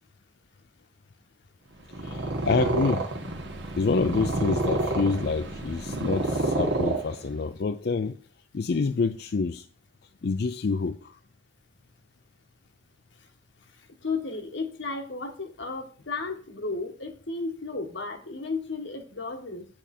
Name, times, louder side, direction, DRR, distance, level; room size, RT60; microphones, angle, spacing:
Purr, 1.8-7.5, right 2 dB, 75° right, 1.6 m, -29 dB
voice 1, 1.9-3.1 3.8-8.2 8.5-9.7 10.2-11.2, left 4 dB, 60° left, 0.4 m, -27 dB
voice 2, 13.8-19.7, left 3 dB, 85° left, 1.5 m, -34 dB
8.6 x 7.1 x 4.3 m
head